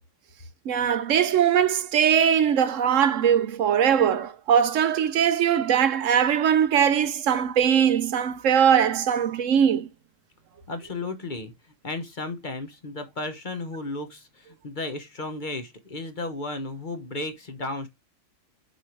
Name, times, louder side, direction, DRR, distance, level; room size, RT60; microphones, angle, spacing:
voice 1, 0.7-9.9, right 8 dB, 75° right, 1.1 m, -21 dB
voice 2, 10.7-11.5 11.8-17.9, left 2 dB, 40° left, 1.2 m, -34 dB
6.8 x 4.9 x 4.5 m
omnidirectional pair, 1.4 m